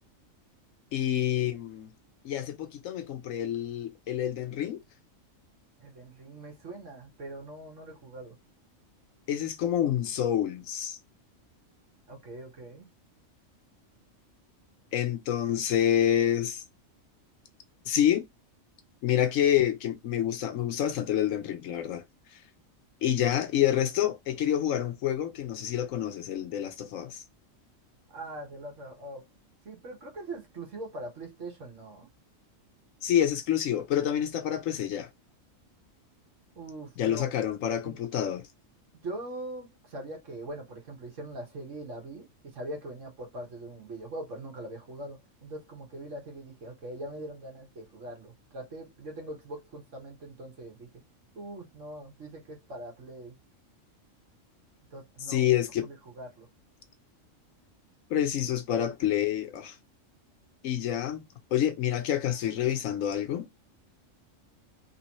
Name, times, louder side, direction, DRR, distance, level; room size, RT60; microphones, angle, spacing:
voice 1, 0.9-1.9 2.2-4.8 9.3-11.0 14.9-16.6 17.9-18.2 19.0-22.0 23.0-27.2 33.0-35.1 37.0-38.5 55.3-55.9 58.1-59.7 60.6-61.2 61.5-63.5, left 10 dB, 75° left, 1.1 m, -27 dB
voice 2, 5.8-8.4 12.1-12.9 28.1-29.2 29.7-32.1 36.6-37.3 37.8-38.0 38.9-50.9 51.4-53.4 54.9-55.5 55.8-56.5, right 1 dB, 65° right, 1.7 m, -42 dB
3.4 x 3.0 x 2.9 m
omnidirectional pair, 1.4 m